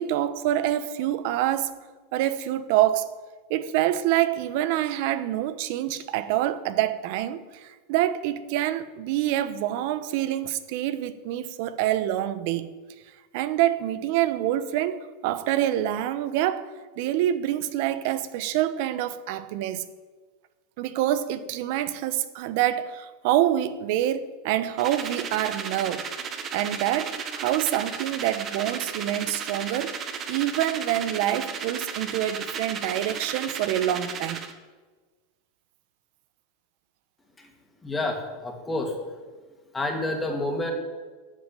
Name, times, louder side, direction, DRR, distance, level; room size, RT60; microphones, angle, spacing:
voice 1, 0.0-1.8 2.1-3.1 3.5-12.7 13.3-16.7 17.0-19.8 20.8-26.1 26.5-34.4, right 12 dB, 60° right, 1.0 m, -26 dB
sound 1, 24.8-34.5, right 6 dB, 30° right, 1.4 m, -34 dB
voice 2, 37.8-38.9 39.7-40.7, left 2 dB, 10° left, 2.6 m, -29 dB
13.0 x 7.5 x 9.2 m
supercardioid pair, 135°, 0 cm